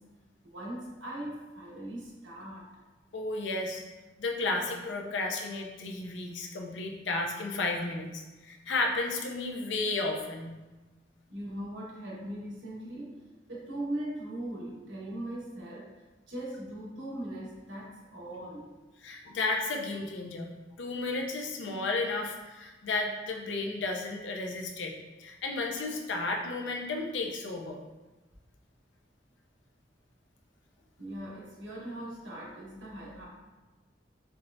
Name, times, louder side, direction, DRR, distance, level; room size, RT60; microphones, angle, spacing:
voice 1, 0.4-2.7 11.3-13.2 13.5-15.9 16.3-18.7 31.0-33.3, right 1 dB, 90° right, -5 dB, 1.2 m, -39 dB
voice 2, 3.1-3.8 4.2-10.6 19.0-20.5 20.8-24.9 25.2-27.8, left 3 dB, 80° left, 1 dB, 0.6 m, -33 dB
4.6 x 3.2 x 2.6 m, 1.2 s
head